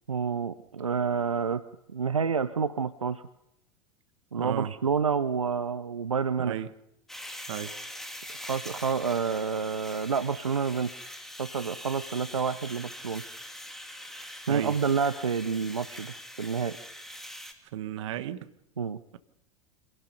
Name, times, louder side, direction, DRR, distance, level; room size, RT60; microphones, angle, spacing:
voice 1, 0.1-1.6 1.9-3.2 4.3-6.5 8.4-11.1 11.4-13.2 14.5-16.8 18.8-19.0, right 6 dB, 90° right, 14 dB, 0.7 m, -29 dB
voice 2, 4.4-4.7 6.4-6.7 7.5-7.8 14.5-14.8 17.7-18.5, right 11 dB, 65° right, 12 dB, 1.4 m, -34 dB
sound 1, 7.1-17.5, equal, ahead, 2.9 m, -43 dB
27.0 x 17.5 x 5.5 m, 0.78 s
figure-of-eight pair, 85°, 17 cm